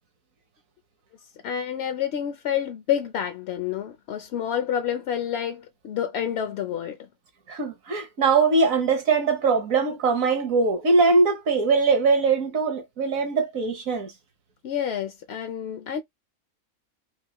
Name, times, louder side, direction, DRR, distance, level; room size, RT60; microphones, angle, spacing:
voice 1, 1.4-7.1 14.6-16.0, left 9 dB, 65° left, 0.7 m, -28 dB
voice 2, 7.5-14.1, right 4 dB, 70° right, 1.4 m, -21 dB
4.6 x 2.2 x 2.9 m
omnidirectional pair, 1.5 m